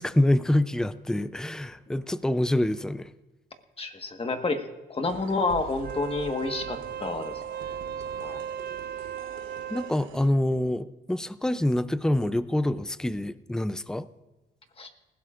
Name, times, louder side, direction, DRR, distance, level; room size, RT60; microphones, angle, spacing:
voice 1, 0.0-3.1 9.7-14.1, left 1 dB, 5° left, 15 dB, 0.5 m, -26 dB
voice 2, 3.8-4.6 4.9-7.7 8.2-8.4 14.8-14.9, left 3 dB, 30° left, 6 dB, 1.6 m, -29 dB
sound 1, 5.0-10.3, right 9 dB, 80° right, 1.1 m, -45 dB
Wind instrument woodwind instrument, 5.7-10.0, right 8 dB, 50° right, 0.7 m, -36 dB
19.5 x 16.0 x 2.5 m, 1.1 s
cardioid pair, 90°, 20 cm